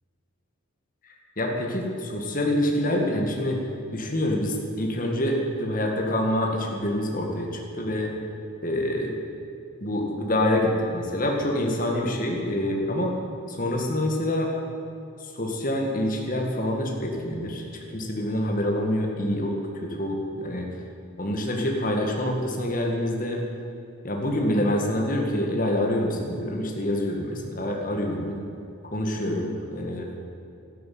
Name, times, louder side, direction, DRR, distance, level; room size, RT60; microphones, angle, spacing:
voice 1, 1.0-3.6 3.9-8.1 8.6-9.1 9.8-13.1 13.5-14.5 15.4-17.6 17.9-20.7 21.2-23.4 24.0-28.4 28.8-30.1, left 1 dB, 40° left, 0 dB, 2.0 m, -26 dB
12.5 x 12.0 x 9.5 m, 2.8 s
head